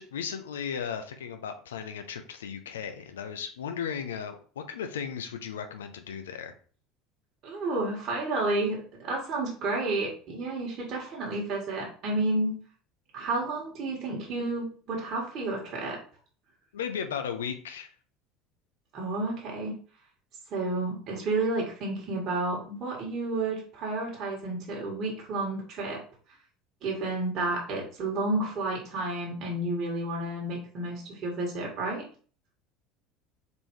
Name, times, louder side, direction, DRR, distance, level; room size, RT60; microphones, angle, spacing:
voice 1, 0.0-6.5 16.7-17.9, left 7 dB, 80° left, 7 dB, 0.5 m, -36 dB
voice 2, 7.4-12.5 13.1-16.0 18.9-19.7 20.5-26.0 26.8-32.0, right 2 dB, 45° right, -3 dB, 1.6 m, -31 dB
4.0 x 3.6 x 3.0 m, 0.42 s
hypercardioid pair, 70°, 0 cm